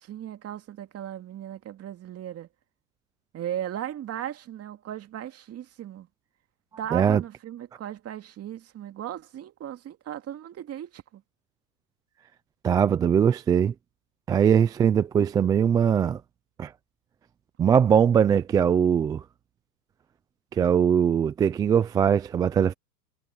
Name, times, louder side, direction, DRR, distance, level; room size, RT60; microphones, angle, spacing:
voice 1, 0.0-2.5 3.3-6.1 6.8-11.2, right 11 dB, 30° right, 2.4 m, -37 dB
voice 2, 6.9-7.2 12.6-13.7 14.3-16.2 16.6-16.7 17.6-19.2 20.6-22.7, right 8 dB, 10° right, 0.3 m, -21 dB
hypercardioid pair, 110°, 49 cm